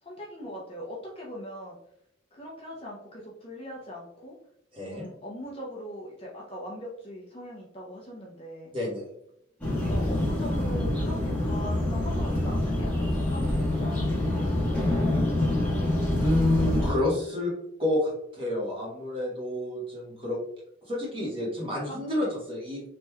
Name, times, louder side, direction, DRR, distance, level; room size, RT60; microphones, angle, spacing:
voice 1, 0.0-1.8 2.3-4.4 4.8-8.7 9.8-15.6 21.8-22.3, equal, 25° left, -3 dB, 0.6 m, -41 dB
voice 2, 4.7-5.0 8.7-9.0 15.6-17.5 17.8-20.4 20.9-22.8, left 1 dB, 25° right, -5 dB, 1.2 m, -29 dB
sound 1, 9.6-16.9, left 1 dB, 5° left, 1.1 m, -26 dB
3.3 x 3.0 x 2.2 m, 0.77 s
head